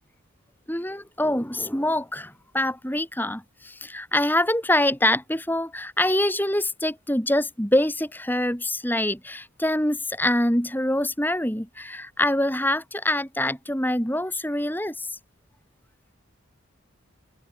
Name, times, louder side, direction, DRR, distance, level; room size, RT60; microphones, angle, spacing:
voice 1, 0.7-15.2, left 1 dB, 10° left, 6.1 m, -25 dB
head